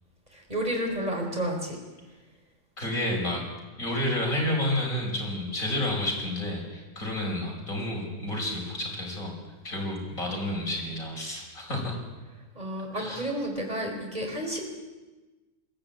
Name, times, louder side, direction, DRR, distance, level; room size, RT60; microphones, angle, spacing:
voice 1, 0.3-1.8 12.5-14.6, equal, 20° right, 1 dB, 4.7 m, -31 dB
voice 2, 2.8-3.4 3.8-9.4 9.6-12.0 12.9-13.3, left 1 dB, 45° left, -1 dB, 5.8 m, -30 dB
22.0 x 15.0 x 8.9 m, 1.2 s
omnidirectional pair, 2.0 m